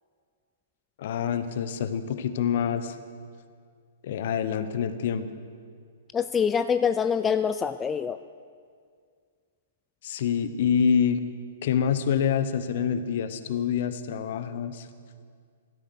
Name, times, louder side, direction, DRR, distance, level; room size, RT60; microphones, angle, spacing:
voice 1, 1.0-3.0 4.0-5.3 10.0-11.2 11.6-14.9, left 7 dB, 50° left, 11 dB, 1.0 m, -26 dB
voice 2, 6.1-8.2, left 7 dB, 15° left, 11 dB, 0.4 m, -25 dB
16.5 x 13.5 x 6.4 m, 2.1 s
figure-of-eight pair, 110°, 0 cm